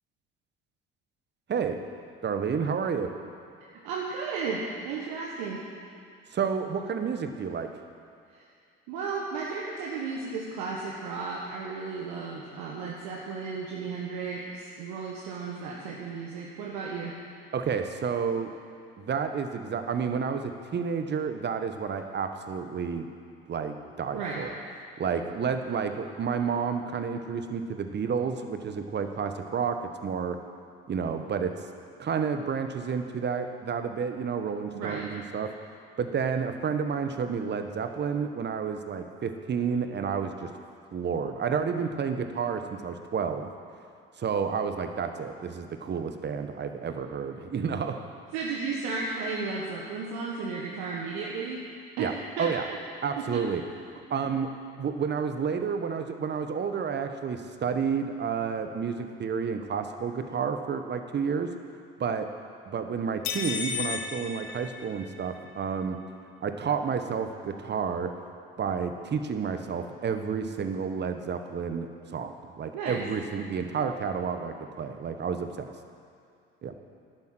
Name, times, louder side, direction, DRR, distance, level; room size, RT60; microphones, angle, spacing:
voice 1, 2.2-3.1 6.3-7.7 17.5-18.5 19.0-23.1 23.5-24.5 25.0-30.4 30.9-31.5 32.0-35.5 36.0-40.5 40.9-43.5 44.2-48.0 52.0-52.1 52.4-52.6 53.0-53.6 54.1-54.5 54.8-61.5 62.0-62.3 62.7-66.0 66.4-68.1 68.6-75.7 76.6-76.7, right 6 dB, 35° right, 7 dB, 1.2 m, -30 dB
voice 2, 3.8-5.7 8.3-8.4 8.9-17.2 24.1-24.4 34.7-35.0 48.3-51.7 52.0-52.8 53.2-53.5 72.7-73.0, right 4 dB, 65° right, -3 dB, 1.6 m, -34 dB
sound 1, 63.2-65.4, left 6 dB, 60° left, 1.3 m, -34 dB
11.0 x 9.2 x 7.7 m, 2.4 s
hypercardioid pair, 60°, 30 cm